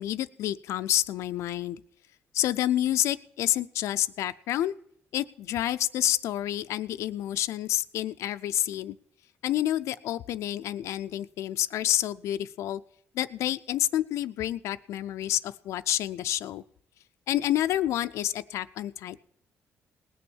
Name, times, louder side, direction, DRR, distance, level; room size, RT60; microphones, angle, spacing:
voice 1, 0.0-1.8 2.3-4.7 5.1-9.0 9.4-12.8 13.1-16.6 17.3-19.2, left 13 dB, 85° left, 11 dB, 0.4 m, -29 dB
19.0 x 6.9 x 6.3 m, 0.72 s
cardioid pair, 150°, 5 cm